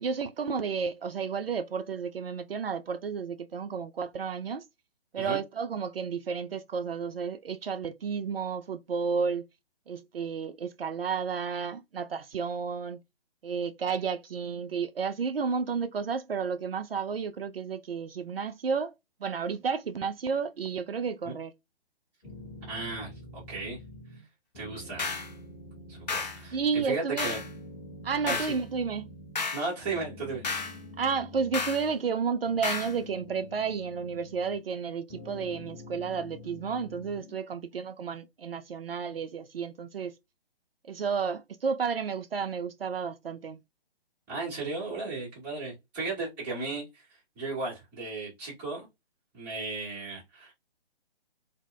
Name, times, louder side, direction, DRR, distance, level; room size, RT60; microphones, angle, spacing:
voice 1, 0.0-4.6 5.1-9.4 9.9-13.0 13.4-18.9 19.2-21.5 26.5-27.4 28.0-29.1 31.0-40.1 40.9-43.6, right 6 dB, 65° right, 0.4 m, -32 dB
sound 1, 22.2-24.3 24.5-26.9 27.2-29.5 29.8-32.2 32.5-34.8 35.1-37.4, left 1 dB, 15° left, 0.9 m, -47 dB
voice 2, 22.7-23.8 24.5-25.1 25.9-26.6 26.8-27.4 28.2-28.5 29.5-30.5 44.3-47.1 47.4-48.9 49.3-50.5, right 3 dB, 5° right, 0.6 m, -35 dB
sound 2, 25.0-25.3 26.1-26.4 27.2-27.5 28.3-28.6 29.3-29.7 30.4-30.8 31.5-31.8 32.6-32.9, left 4 dB, 45° left, 0.5 m, -32 dB
2.1 x 2.0 x 3.7 m
figure-of-eight pair, 140°, 32 cm